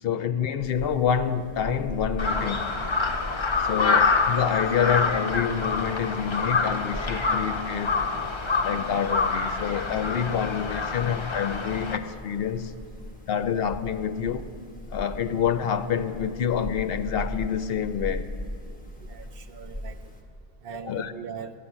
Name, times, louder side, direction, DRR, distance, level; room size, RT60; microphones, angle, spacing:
voice 1, 0.0-2.7 3.6-7.9 8.6-12.7 13.3-14.4 14.9-18.3 20.7-21.1, left 8 dB, 65° left, 10 dB, 0.8 m, -27 dB
sound 1, 0.6-20.2, left 1 dB, 10° left, 1.2 m, -40 dB
Crow, 2.2-12.0, left 4 dB, 30° left, 0.6 m, -26 dB
voice 2, 19.0-20.1 20.6-21.5, right 7 dB, 65° right, 7 dB, 0.8 m, -40 dB
12.5 x 7.7 x 8.6 m, 2.4 s
omnidirectional pair, 1.1 m